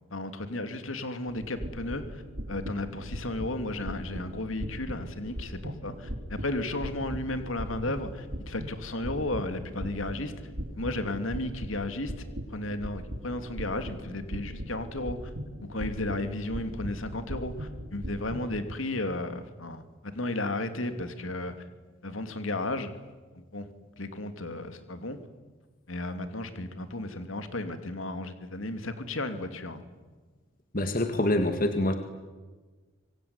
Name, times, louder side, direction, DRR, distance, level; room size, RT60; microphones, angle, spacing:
voice 1, 0.1-2.2 2.5-10.4 10.7-12.2 12.5-15.3 15.6-21.5 22.0-22.9 23.3-23.7 24.0-25.2 25.9-29.8, left 2 dB, 80° left, 8 dB, 2.9 m, -34 dB
sound 1, 1.3-18.6, equal, 70° right, 3.4 m, -39 dB
voice 2, 30.7-32.0, left 1 dB, 45° left, 6 dB, 2.0 m, -25 dB
26.0 x 23.5 x 9.8 m, 1.3 s
head